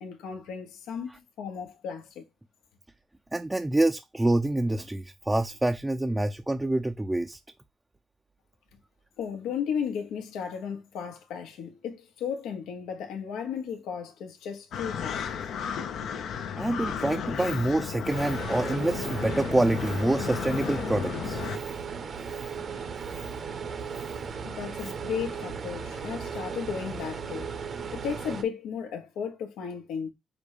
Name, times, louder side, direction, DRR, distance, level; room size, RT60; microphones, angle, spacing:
voice 1, 0.0-2.2 9.2-15.3 24.4-27.5 27.9-30.1, left 7 dB, 85° left, 0.9 m, -35 dB
voice 2, 3.3-7.4 16.6-21.7 22.3-22.4 23.1-23.2 24.0-24.1, right 1 dB, 10° right, 0.4 m, -27 dB
sound 1, 14.7-21.6, left 7 dB, 70° left, 0.6 m, -34 dB
sound 2, 18.1-28.4, right 6 dB, 50° right, 0.8 m, -36 dB
5.1 x 2.2 x 4.7 m
cardioid pair, 90°, 0 cm